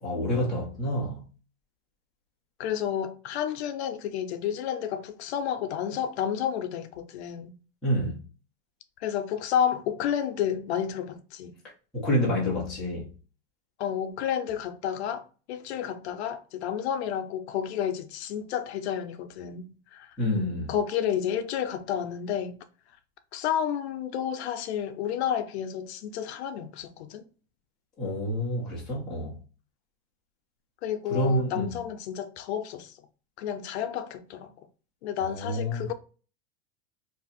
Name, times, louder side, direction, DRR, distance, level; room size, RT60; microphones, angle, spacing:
voice 1, 0.0-1.3 7.8-8.2 11.9-13.1 20.2-20.7 28.0-29.4 31.1-31.8 35.2-35.9, equal, ahead, 0.3 m, -28 dB
voice 2, 2.6-7.5 9.0-11.6 13.8-20.1 20.7-22.6 23.3-27.2 30.8-32.9 33.4-34.5 35.0-35.9, left 9 dB, 65° left, 0.6 m, -31 dB
2.7 x 2.5 x 3.8 m
supercardioid pair, 180°, 35 cm